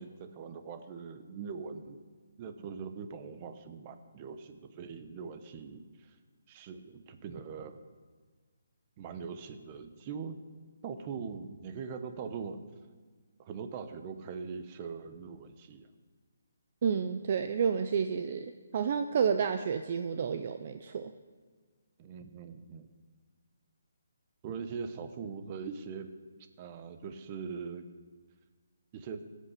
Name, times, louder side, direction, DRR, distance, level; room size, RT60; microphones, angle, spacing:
voice 1, 0.0-2.0 2.4-6.1 6.5-7.8 9.0-10.4 10.8-12.6 13.4-15.9 22.0-22.9 24.4-26.1 26.6-27.8 28.9-29.2, right 5 dB, 25° right, 8 dB, 0.9 m, -42 dB
voice 2, 16.8-21.1, right 6 dB, 40° right, 8 dB, 0.6 m, -30 dB
17.0 x 8.4 x 6.8 m, 1.5 s
hypercardioid pair, 165°, 0 cm